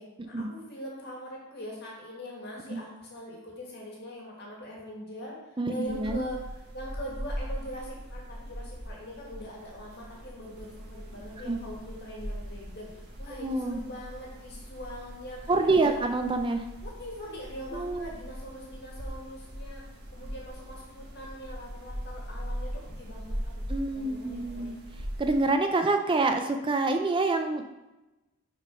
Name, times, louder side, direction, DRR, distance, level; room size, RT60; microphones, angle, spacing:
voice 1, 0.0-6.4 6.7-16.1 16.8-19.8 20.1-23.6 23.9-24.8, equal, 45° left, -3 dB, 1.8 m, -42 dB
voice 2, 5.6-6.2 11.4-11.6 13.4-13.8 15.5-16.7 17.7-18.1 23.7-24.7 25.2-27.7, right 3 dB, 20° right, 6 dB, 0.4 m, -27 dB
sound 1, 5.9-25.5, equal, 45° right, 1.4 m, -40 dB
6.0 x 4.4 x 5.4 m, 1.0 s
head